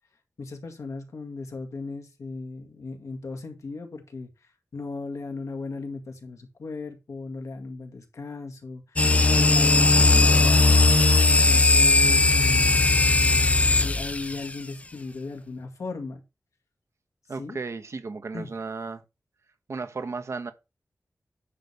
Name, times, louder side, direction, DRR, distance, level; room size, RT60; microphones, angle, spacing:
voice 1, 0.4-4.3 4.7-10.8 11.3-13.5 13.8-16.2 17.4-17.6 18.3-18.5, left 3 dB, 90° left, 2.0 m, -37 dB
sound 1, 9.0-14.5, left 3 dB, 25° left, 0.4 m, -18 dB
voice 2, 17.3-19.0 19.7-20.5, right 4 dB, 65° right, 1.1 m, -34 dB
9.9 x 3.4 x 6.7 m
wide cardioid pair, 80°, 5 cm